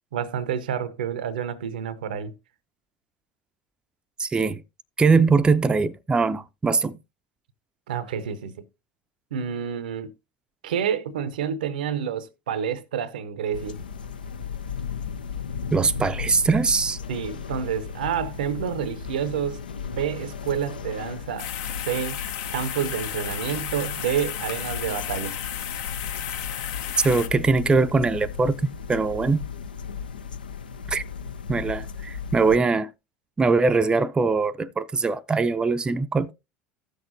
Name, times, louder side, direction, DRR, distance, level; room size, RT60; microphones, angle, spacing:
voice 1, 0.1-2.3 7.9-8.6 9.3-10.1 10.6-13.8 17.1-21.5 21.9-22.2 22.5-25.4, right 8 dB, 70° right, 0.6 m, -29 dB
voice 2, 4.2-4.6 5.0-7.0 15.7-17.0 27.0-29.4 30.9-31.0 31.5-32.9 33.4-36.3, right 4 dB, 20° right, 0.5 m, -22 dB
sound 1, 13.5-32.6, left 6 dB, 80° left, 0.5 m, -35 dB
sound 2, 21.4-27.3, left 10 dB, 60° left, 0.8 m, -33 dB
15.0 x 6.4 x 2.6 m
figure-of-eight pair, 70°, 5 cm